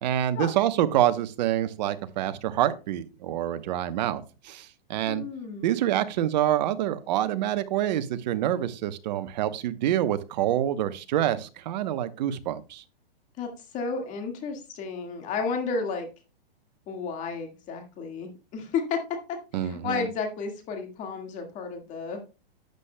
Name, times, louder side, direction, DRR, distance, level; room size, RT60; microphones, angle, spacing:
voice 1, 0.0-5.2 5.6-12.8 19.5-20.1, right 12 dB, 45° right, 12 dB, 0.9 m, -26 dB
voice 2, 5.1-5.7 13.4-16.1 16.9-19.0 19.3-22.2, left 5 dB, 25° left, 4 dB, 1.8 m, -32 dB
11.5 x 8.1 x 2.2 m, 0.32 s
hypercardioid pair, 150°, 31 cm